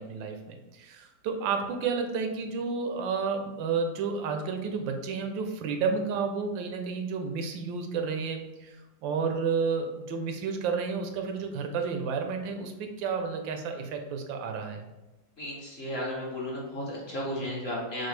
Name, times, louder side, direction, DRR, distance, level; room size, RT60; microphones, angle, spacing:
voice 1, 0.0-8.8 9.0-14.9 17.5-17.6, right 5 dB, 90° right, 5 dB, 1.3 m, -31 dB
voice 2, 15.4-18.1, left 1 dB, 45° left, -4 dB, 0.9 m, -34 dB
6.1 x 2.1 x 3.2 m, 1.0 s
omnidirectional pair, 2.0 m